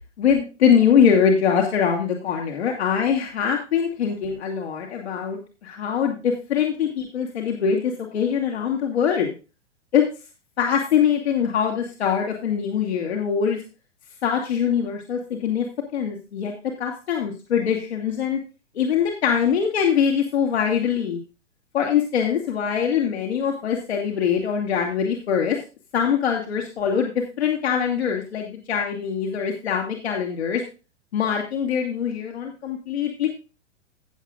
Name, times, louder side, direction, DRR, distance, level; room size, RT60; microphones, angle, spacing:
voice 1, 0.2-9.3 9.9-10.0 10.6-13.6 14.2-15.7 15.9-16.5 16.8-18.4 18.8-21.2 21.7-25.6 25.9-27.1 27.4-30.6 31.1-33.3, left 7 dB, 60° left, 1 dB, 2.2 m, -23 dB
17.0 x 7.4 x 2.5 m, 0.32 s
figure-of-eight pair, 105°, 37 cm